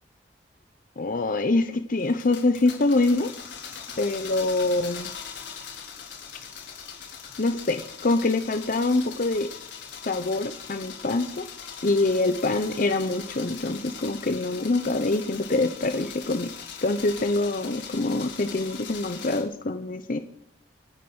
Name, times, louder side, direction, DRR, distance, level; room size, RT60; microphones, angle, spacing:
voice 1, 1.0-3.3 4.0-5.1 7.4-9.5 10.1-11.5 11.8-16.5 16.8-20.2, left 2 dB, 50° left, 8 dB, 0.9 m, -25 dB
sound 1, 2.0-19.4, left 7 dB, 85° left, 4.8 m, -41 dB
24.5 x 9.1 x 6.3 m, 0.75 s
head